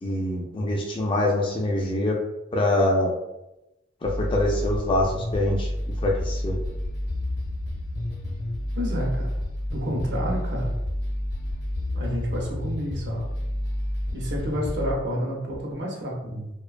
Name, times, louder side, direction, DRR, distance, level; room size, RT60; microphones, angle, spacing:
voice 1, 0.0-2.2 2.5-3.1 4.0-5.7 6.0-6.6, left 1 dB, 25° left, -1 dB, 0.3 m, -24 dB
sound 1, 4.0-14.9, left 1 dB, 60° left, 0.6 m, -29 dB
voice 2, 8.7-9.3 9.7-10.7 11.9-13.2 14.1-16.5, equal, 65° right, -2 dB, 0.6 m, -29 dB
2.5 x 2.1 x 2.4 m, 0.93 s
head